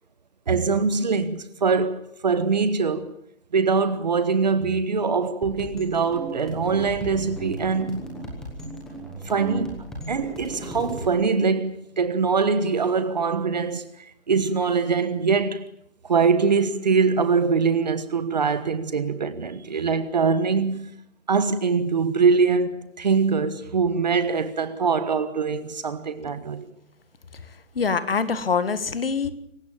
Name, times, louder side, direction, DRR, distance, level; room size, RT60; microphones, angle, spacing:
voice 1, 0.5-3.1 3.5-8.0 9.2-15.6 16.0-20.9 21.3-26.7, right 5 dB, 35° right, 1.4 m, -23 dB
sound 1, 5.4-11.1, right 1 dB, ahead, 1.0 m, -36 dB
voice 2, 27.8-29.3, left 5 dB, 45° left, 1.7 m, -24 dB
26.0 x 15.5 x 9.0 m
hypercardioid pair, 165°, 39 cm